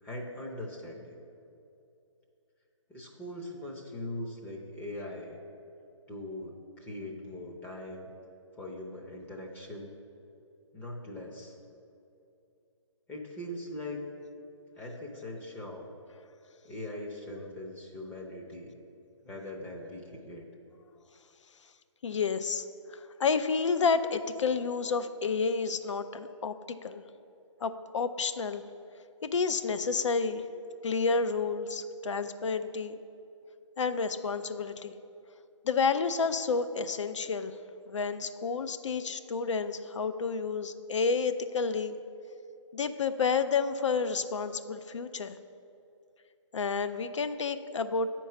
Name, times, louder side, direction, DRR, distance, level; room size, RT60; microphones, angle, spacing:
voice 1, 0.0-1.1 2.9-5.4 6.1-8.1 8.6-9.9 10.7-11.6 13.1-14.0 14.8-15.9 16.6-18.8 19.2-20.4, left 1 dB, 10° left, -1 dB, 0.6 m, -41 dB
voice 2, 22.0-22.6 22.9-26.5 26.8-27.0 27.6-28.6 29.2-30.4 30.8-33.0 33.8-34.9 35.6-37.6 37.9-42.0 42.7-45.3 46.5-48.1, left 5 dB, 70° left, 11 dB, 0.5 m, -30 dB
9.1 x 4.5 x 5.7 m, 2.7 s
figure-of-eight pair, 140°, 16 cm